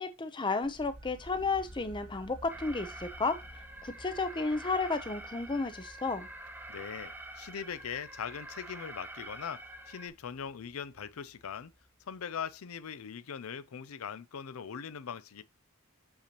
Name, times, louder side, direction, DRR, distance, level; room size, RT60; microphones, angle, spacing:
voice 1, 0.0-3.4 3.8-6.3, left 3 dB, 20° left, 0.6 m, -32 dB
sound 1, 0.6-12.5, right 1 dB, 65° right, 1.8 m, -54 dB
Alarm, 2.5-10.1, right 1 dB, 10° right, 0.9 m, -47 dB
voice 2, 6.7-11.7 12.1-15.4, left 7 dB, 85° left, 0.5 m, -41 dB
6.7 x 5.6 x 2.9 m
head